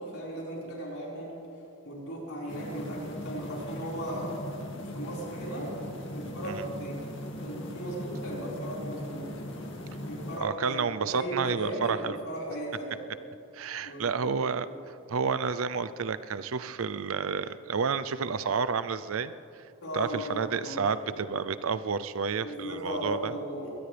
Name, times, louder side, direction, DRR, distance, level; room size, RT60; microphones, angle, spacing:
voice 1, 0.0-1.3 1.8-4.4 4.8-5.7 6.1-7.0 7.4-9.3 10.0-13.1 13.8-14.3 14.6-14.8 19.8-21.1 22.4-23.8, equal, 80° left, -5 dB, 5.0 m, -37 dB
sound 1, 2.5-10.4, equal, 55° left, 2.2 m, -39 dB
voice 2, 10.4-12.2 13.5-19.3 19.9-23.3, right 5 dB, 70° right, 13 dB, 0.5 m, -30 dB
22.5 x 18.0 x 3.4 m, 2.7 s
head